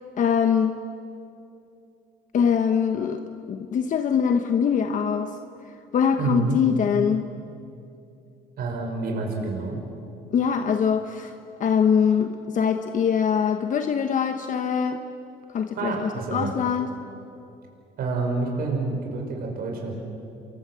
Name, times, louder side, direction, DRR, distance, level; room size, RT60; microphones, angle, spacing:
voice 1, 0.2-0.8 2.3-3.2 3.5-5.4 5.9-7.2 10.3-11.3 11.6-15.0 15.5-16.9, left 7 dB, 50° left, 7 dB, 1.2 m, -23 dB
voice 2, 6.2-6.6 8.6-9.8 15.8-16.5 18.0-19.9, right 3 dB, 65° right, 1 dB, 5.5 m, -28 dB
29.0 x 22.5 x 7.7 m, 2.7 s
cardioid pair, 110°, 17 cm